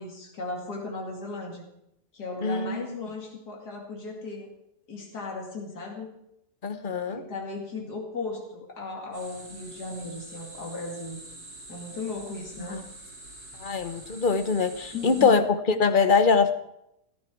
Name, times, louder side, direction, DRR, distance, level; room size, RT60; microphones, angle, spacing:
voice 1, 0.0-1.7 2.1-4.5 4.9-6.1 7.1-11.2 11.7-12.8 14.9-15.3, left 3 dB, 90° left, 0 dB, 3.0 m, -36 dB
voice 2, 2.4-3.0 6.6-7.2 12.6-12.8 13.6-16.5, left 5 dB, 35° left, 9 dB, 1.0 m, -23 dB
sound 1, 9.1-15.3, right 2 dB, 75° right, 3.8 m, -45 dB
17.0 x 14.0 x 4.7 m, 0.80 s
omnidirectional pair, 1.7 m